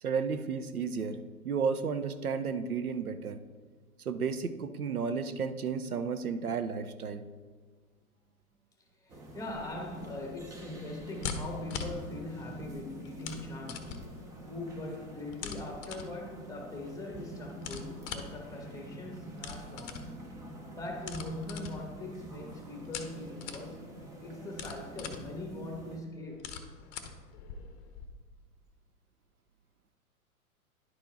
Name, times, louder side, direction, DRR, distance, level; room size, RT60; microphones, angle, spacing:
voice 1, 0.0-3.4 4.0-7.2, right 5 dB, 85° right, 0.7 m, -33 dB
voice 2, 8.9-14.0 14.5-20.1 20.7-23.9 24.2-26.5, left 2 dB, 10° left, 1.3 m, -41 dB
sound 1, 9.1-26.0, right 1 dB, 10° right, 0.5 m, -47 dB
sound 2, 9.5-28.1, left 6 dB, 30° left, 0.8 m, -45 dB
10.5 x 4.5 x 3.9 m
figure-of-eight pair, 105°, 43 cm